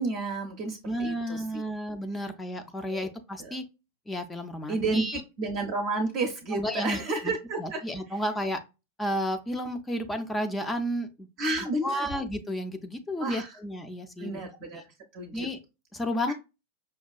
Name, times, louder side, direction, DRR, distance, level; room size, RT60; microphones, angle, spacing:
voice 1, 0.0-1.6 2.9-3.1 3.4-3.5 4.7-7.8 8.1-8.2 11.4-12.1 13.2-13.5 14.2-14.8 15.1-15.5 16.3-16.4, right 3 dB, 40° right, 4 dB, 0.6 m, -31 dB
voice 2, 0.8-3.6 4.1-5.2 6.5-7.3 7.6-8.6 9.0-11.3 11.8-14.4 14.7-14.8 15.3-15.6 15.9-16.3, equal, 10° left, 7 dB, 0.4 m, -32 dB
5.4 x 2.3 x 2.2 m, 0.27 s
figure-of-eight pair, 90°, 0 cm